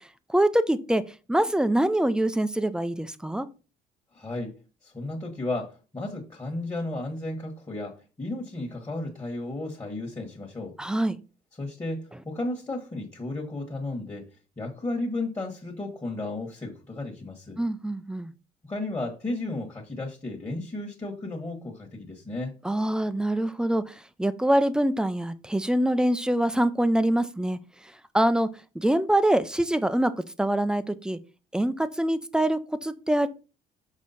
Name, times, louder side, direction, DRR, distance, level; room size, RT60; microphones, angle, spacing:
voice 1, 0.3-1.0 1.3-3.5 10.8-11.2 17.6-18.3 22.6-27.6 28.1-28.5 28.7-30.1 30.4-31.2 31.5-33.3, right 1 dB, 5° right, 0.5 m, -24 dB
voice 2, 4.1-4.6 4.8-10.8 11.6-14.3 14.6-17.6 18.6-22.5, left 2 dB, 20° left, 1.5 m, -34 dB
6.4 x 4.8 x 4.2 m
cardioid pair, 110°, 17 cm